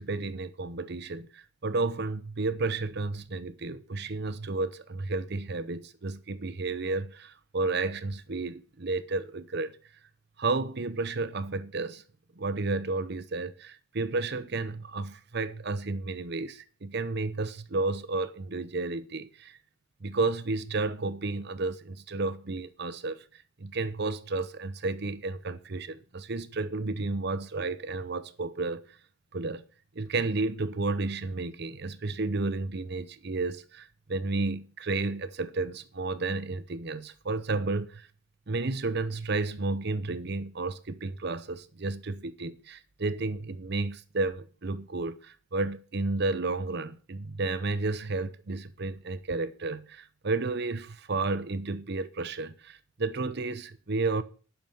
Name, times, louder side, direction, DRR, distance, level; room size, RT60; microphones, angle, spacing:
voice 1, 0.0-9.7 10.4-12.0 12.4-19.6 20.0-23.2 23.6-28.9 29.3-29.6 30.0-38.1 38.5-54.2, right 3 dB, 55° right, 0.8 m, -32 dB
11.0 x 6.0 x 7.0 m
head